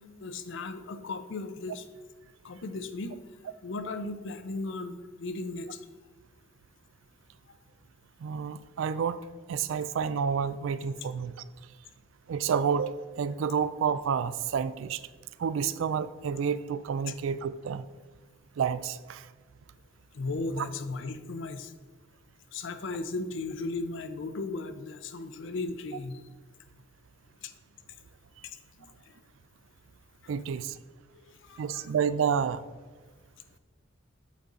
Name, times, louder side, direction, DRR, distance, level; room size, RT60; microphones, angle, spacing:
voice 1, 0.2-1.8 2.4-3.1 3.6-5.8 20.1-21.7 22.5-26.2 27.4-27.5 28.4-28.6 31.1-31.9, left 3 dB, 70° left, 9 dB, 0.5 m, -36 dB
voice 2, 8.2-9.2 9.5-11.4 12.3-15.0 15.4-17.8 18.6-19.3 20.6-20.7 30.3-30.8 31.6-32.6, right 7 dB, 80° right, 15 dB, 0.3 m, -29 dB
8.3 x 3.9 x 3.8 m, 1.4 s
head